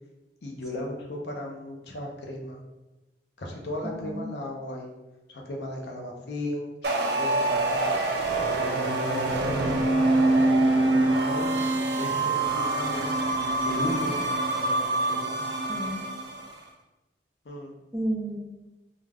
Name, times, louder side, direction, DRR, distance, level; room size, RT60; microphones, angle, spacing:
voice 1, 0.4-2.6 3.4-4.9 5.3-7.9 8.4-13.2 13.6-14.3 14.5-15.4 17.4-17.8, left 1 dB, 70° left, 1 dB, 0.5 m, -36 dB
voice 2, 3.8-4.3 15.7-16.1 17.9-18.4, right 1 dB, 5° right, -6 dB, 0.5 m, -32 dB
sound 1, 6.8-16.5, right 2 dB, 70° right, 0.4 m, -25 dB
2.3 x 2.2 x 3.3 m, 1.0 s
head